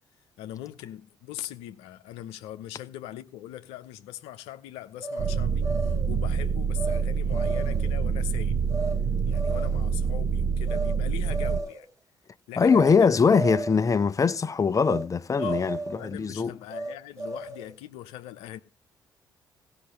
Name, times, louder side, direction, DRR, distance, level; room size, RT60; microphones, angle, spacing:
voice 1, 0.4-8.6 9.3-11.9 12.5-13.1 15.4-18.6, left 13 dB, 70° left, 0.9 m, -41 dB
sound 1, 5.0-6.1 6.8-7.0 7.3-7.9 8.7-9.0 9.3-9.9 10.6-11.0 11.3-11.9 12.6-13.0 13.3-13.9 14.8-15.1 15.3-16.1 16.7-17.7, right 3 dB, 30° right, 2.0 m, -34 dB
sound 2, 5.2-11.6, right 6 dB, 50° right, 0.9 m, -26 dB
voice 2, 12.6-15.8 16.0-16.5, left 5 dB, 30° left, 0.9 m, -22 dB
17.0 x 5.9 x 5.4 m
hypercardioid pair, 45°, 11 cm